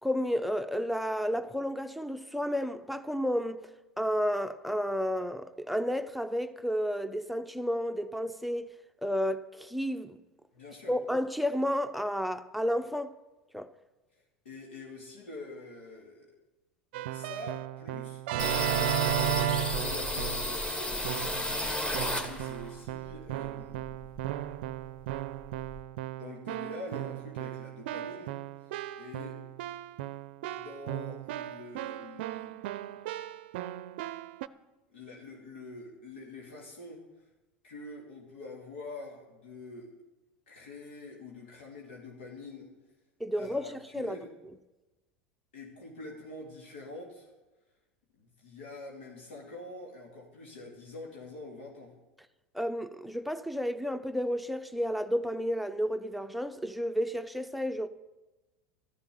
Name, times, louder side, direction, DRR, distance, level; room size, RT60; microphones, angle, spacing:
voice 1, 0.0-3.6 4.0-8.7 9.0-10.2 10.9-13.1 13.5-13.7 43.2-44.2 52.5-57.9, equal, ahead, 0.7 m, -31 dB
voice 2, 10.5-10.9 14.1-16.3 17.0-18.2 18.7-21.0 22.0-24.0 26.1-28.4 28.6-28.7 29.0-29.4 30.5-33.0 34.9-37.2 37.6-39.9 40.5-42.7 43.4-44.3 45.5-47.3 48.1-51.9, left 2 dB, 75° left, 2.5 m, -46 dB
Keyboard (musical), 16.9-20.6 21.0-21.5 21.9-34.5, right 12 dB, 65° right, 0.5 m, -35 dB
sound 1, 18.4-22.7 23.1-24.4 24.7-24.8 25.1-25.8, left 1 dB, 15° left, 2.1 m, -33 dB
13.5 x 7.1 x 9.5 m
hypercardioid pair, 80°, 6 cm